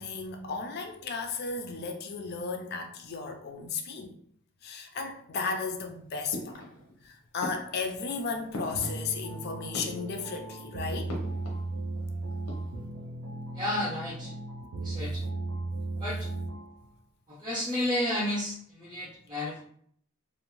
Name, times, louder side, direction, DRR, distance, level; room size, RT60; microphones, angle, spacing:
voice 1, 0.0-4.1 4.6-6.6 7.0-11.1, left 4 dB, 45° left, 0.4 m, -34 dB
sound 1, 6.3-7.0 7.4-9.4 9.6-10.5 11.1-12.1 12.3-12.9, left 1 dB, 85° left, 0.7 m, -42 dB
sound 2, 8.7-16.8, right 2 dB, 70° right, 0.4 m, -36 dB
voice 2, 13.5-14.3 14.8-15.2 16.0-16.3 17.3-19.6, left 1 dB, 20° right, 0.6 m, -32 dB
2.5 x 2.0 x 3.0 m
head